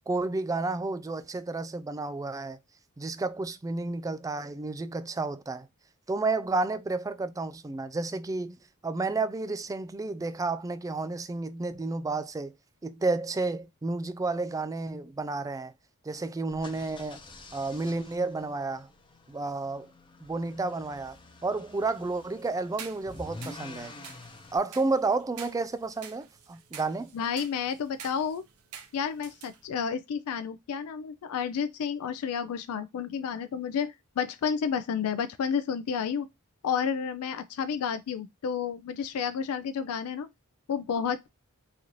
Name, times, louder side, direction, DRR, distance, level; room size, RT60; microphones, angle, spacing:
voice 1, 0.1-2.6 3.0-5.7 6.1-8.6 8.8-12.5 12.8-15.7 16.0-17.2 17.5-18.9 19.3-19.9 20.2-21.2 21.4-23.9 24.5-27.1, right 3 dB, 15° right, 0.3 m, -31 dB
sound 1, 16.5-24.6, left 2 dB, 25° left, 0.6 m, -48 dB
sound 2, 21.7-29.7, right 7 dB, 75° right, 0.7 m, -49 dB
voice 2, 27.1-28.4 28.9-36.3 36.6-40.3 40.7-41.3, left 7 dB, 80° left, 0.4 m, -31 dB
4.0 x 2.5 x 2.9 m
head